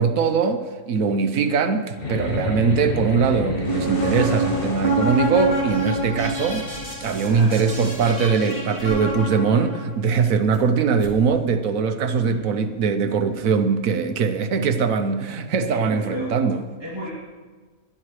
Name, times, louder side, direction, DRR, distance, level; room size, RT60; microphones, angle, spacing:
voice 1, 0.0-6.6 7.0-16.6, right 5 dB, 65° right, 9 dB, 1.2 m, -21 dB
sound 1, 2.0-8.5, left 1 dB, 40° left, 1.8 m, -31 dB
sound 2, 3.5-9.8, right 2 dB, 15° left, 2.9 m, -27 dB
voice 2, 7.1-7.9 12.2-12.8 13.2-13.6 15.7-16.5 16.8-17.1, equal, 15° right, -9 dB, 2.7 m, -35 dB
sound 3, 7.4-8.2 8.5-9.3 9.8-10.7 11.0-11.2 11.6-11.7 12.2-12.3, equal, 65° left, 2.2 m, -41 dB
19.0 x 11.0 x 3.2 m, 1.5 s
omnidirectional pair, 1.6 m